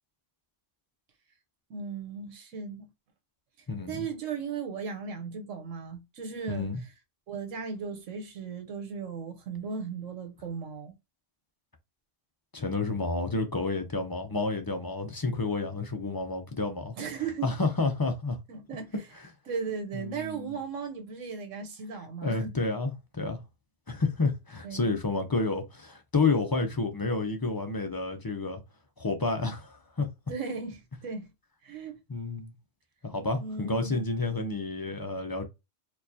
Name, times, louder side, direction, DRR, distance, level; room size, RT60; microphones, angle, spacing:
voice 1, 1.7-2.9 3.9-6.7 7.3-10.9 17.0-17.5 18.5-18.9 19.5-22.5 24.6-25.0 30.3-31.3 31.6-32.0 33.4-34.0, right 5 dB, 90° right, 1.2 m, -36 dB
voice 2, 3.7-4.1 6.5-6.8 12.5-16.9 17.4-18.4 19.9-20.5 22.2-23.4 23.9-28.6 29.0-30.1 32.1-32.5 33.0-35.4, left 3 dB, 35° left, 0.3 m, -30 dB
4.5 x 2.3 x 2.7 m
omnidirectional pair, 1.3 m